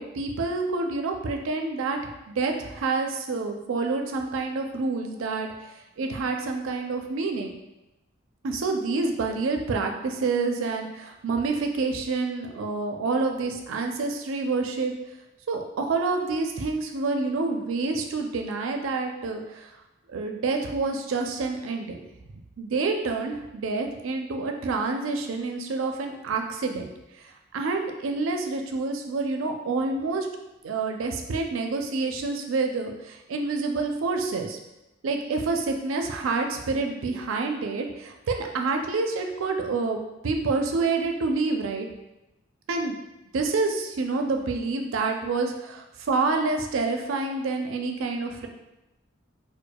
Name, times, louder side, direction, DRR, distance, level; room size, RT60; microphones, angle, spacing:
voice 1, 0.0-2.0 2.3-5.5 6.0-7.5 8.4-14.9 15.5-19.7 20.1-22.0 22.6-26.9 27.5-30.3 30.6-34.6 35.0-41.9 42.7-43.0 43.3-48.5, right 3 dB, 85° right, 3 dB, 0.4 m, -28 dB
4.7 x 2.2 x 2.2 m, 0.97 s
head